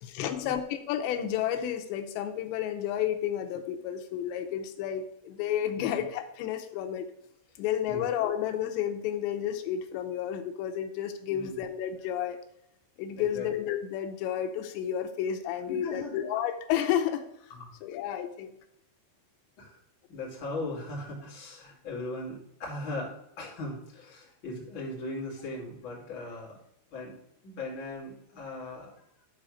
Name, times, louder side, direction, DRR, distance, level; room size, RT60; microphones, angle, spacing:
voice 1, 0.0-7.1 7.6-12.4 13.0-17.2 17.8-18.6, left 10 dB, 90° left, 6 dB, 2.9 m, -31 dB
voice 2, 11.3-11.6 13.2-13.5 15.7-16.2 17.5-17.7 19.6-19.8 20.1-26.6 26.9-27.1 27.4-28.9, left 2 dB, 35° left, -4 dB, 2.8 m, -38 dB
12.0 x 4.1 x 6.4 m, 0.79 s
omnidirectional pair, 5.0 m